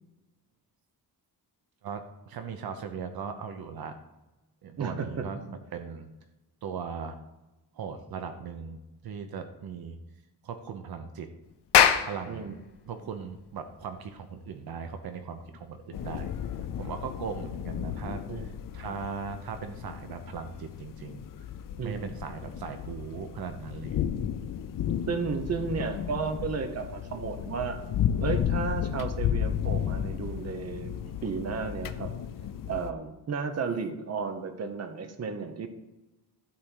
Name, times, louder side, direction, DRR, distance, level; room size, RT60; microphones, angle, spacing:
voice 1, 1.8-4.0 4.6-6.1 6.6-7.2 7.7-8.8 9.0-10.0 10.4-11.3 12.0-12.5 12.8-16.3 16.8-21.3 21.8-24.0, right 6 dB, 65° right, 7 dB, 0.9 m, -38 dB
voice 2, 4.8-5.3 12.3-12.6 18.3-18.5 21.8-22.1 25.1-27.8 28.2-30.9 31.2-32.1 32.7-35.7, right 5 dB, 40° right, 7 dB, 1.0 m, -33 dB
Clapping, 11.5-16.4, left 9 dB, 85° left, 0.9 m, -27 dB
sound 1, 15.9-32.9, left 9 dB, 55° left, 0.6 m, -33 dB
12.5 x 4.4 x 8.0 m, 1.0 s
wide cardioid pair, 175°, 40 cm